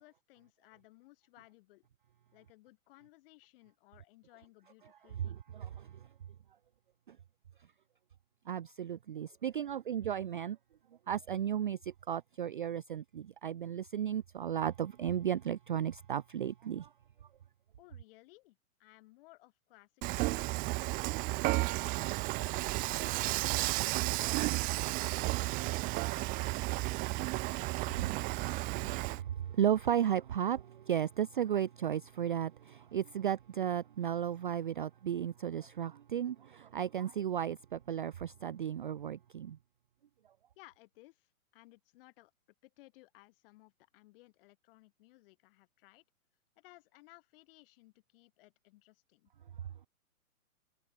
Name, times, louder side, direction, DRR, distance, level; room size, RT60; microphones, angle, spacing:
voice 1, 0.0-1.9 2.3-5.4 17.8-20.7 21.4-25.2 25.8-27.9 40.6-42.3 42.6-46.0 46.6-49.3, left 20 dB, 40° left, 7.8 m, -61 dB
voice 2, 8.5-10.6 11.1-16.9 28.2-39.6, right 10 dB, 40° right, 0.4 m, -34 dB
Dishes pots and pans / Frying (food), 20.0-29.2, right 23 dB, 20° right, 0.9 m, -33 dB
figure-of-eight pair, 120°, 44 cm